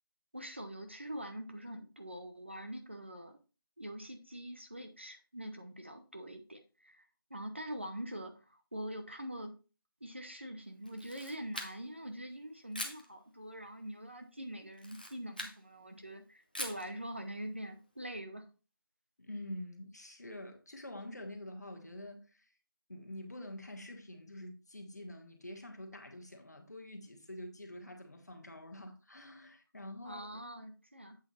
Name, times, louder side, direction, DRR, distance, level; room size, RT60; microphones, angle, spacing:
voice 1, 0.3-3.4 3.8-9.5 10.0-18.4 30.0-31.2, equal, 30° right, 0.7 m, -44 dB
Camera, 10.9-12.0 12.7-13.1 14.7-15.6 16.5-16.9, left 1 dB, 25° left, 0.7 m, -42 dB
voice 2, 19.2-22.5 22.9-30.4, left 1 dB, 45° left, 1.4 m, -47 dB
8.1 x 4.3 x 4.1 m
figure-of-eight pair, 180°, 12 cm